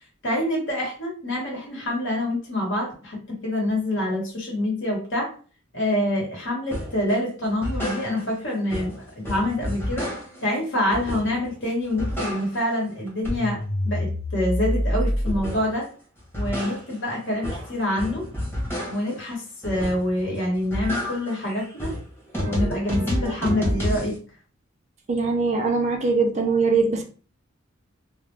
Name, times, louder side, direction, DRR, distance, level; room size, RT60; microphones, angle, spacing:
voice 1, 0.2-5.3 5.7-10.1 10.4-15.9 16.3-18.2 18.9-21.9 22.4-24.2, left 1 dB, 65° left, 1.2 m, -26 dB
sound 1, 6.7-7.0 7.4-8.4 8.7-10.5 10.9-11.5 11.8-12.8 13.1-15.8 16.2-19.2 19.6-20.2 20.5-24.1, equal, 10° left, 0.9 m, -29 dB
voice 2, 25.1-27.0, right 4 dB, 35° right, 0.5 m, -22 dB
2.4 x 2.0 x 3.2 m
head